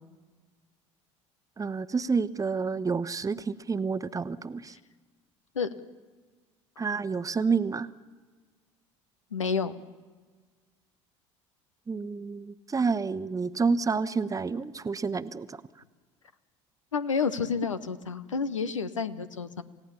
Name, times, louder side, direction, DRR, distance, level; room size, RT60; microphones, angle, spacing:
voice 1, 1.6-4.8 6.8-7.9 11.9-15.6, right 5 dB, 20° right, 11 dB, 1.0 m, -29 dB
voice 2, 9.3-9.7 16.9-19.6, left 5 dB, 90° left, 12 dB, 0.9 m, -29 dB
28.0 x 16.5 x 7.0 m, 1.4 s
hypercardioid pair, 65°, 16 cm